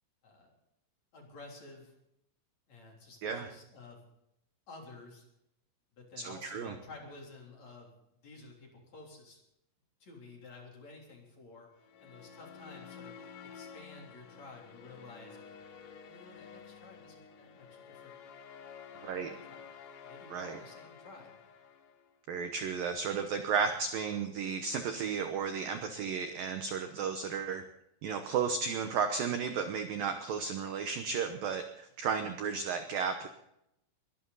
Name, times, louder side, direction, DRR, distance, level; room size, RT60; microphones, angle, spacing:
voice 1, 1.1-1.9 2.7-4.0 4.7-5.2 6.0-8.0 8.2-9.4 10.0-11.7 12.0-15.6 16.0-18.1 18.9-19.6 20.0-21.4, left 3 dB, 40° left, 0 dB, 4.3 m, -52 dB
voice 2, 6.2-6.8 19.0-19.3 20.3-20.6 22.3-27.6 28.0-33.3, right 6 dB, 85° right, 6 dB, 2.0 m, -33 dB
sound 1, 11.8-22.2, left 7 dB, 70° left, 3.5 m, -51 dB
22.0 x 14.0 x 4.1 m, 0.79 s
omnidirectional pair, 5.7 m